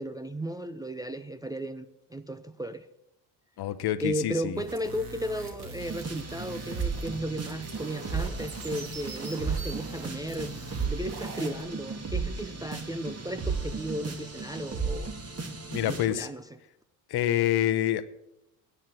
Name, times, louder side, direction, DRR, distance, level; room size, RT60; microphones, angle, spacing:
voice 1, 0.0-2.9 4.0-10.5 10.8-15.1 15.8-16.5, right 1 dB, 10° right, 8 dB, 0.5 m, -35 dB
voice 2, 3.6-4.6 15.7-16.3 17.1-18.0, left 12 dB, 50° left, 13 dB, 0.9 m, -27 dB
sound 1, 4.5-11.6, right 3 dB, 50° right, 2.8 m, -43 dB
sound 2, 5.8-16.1, right 4 dB, 30° right, 2.0 m, -35 dB
9.7 x 8.9 x 7.4 m, 0.86 s
hypercardioid pair, 60°, 48 cm